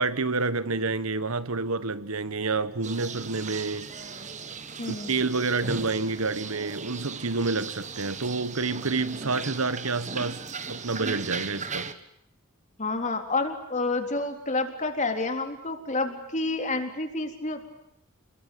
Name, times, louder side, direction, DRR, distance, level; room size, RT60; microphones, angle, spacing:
voice 1, 0.0-3.9 4.9-11.9, right 3 dB, 80° right, 1.4 m, -28 dB
sound 1, 2.8-11.9, right 5 dB, 35° right, 1.6 m, -37 dB
voice 2, 4.8-5.1 12.8-17.7, left 3 dB, 35° left, 3.7 m, -29 dB
29.0 x 22.0 x 9.3 m
head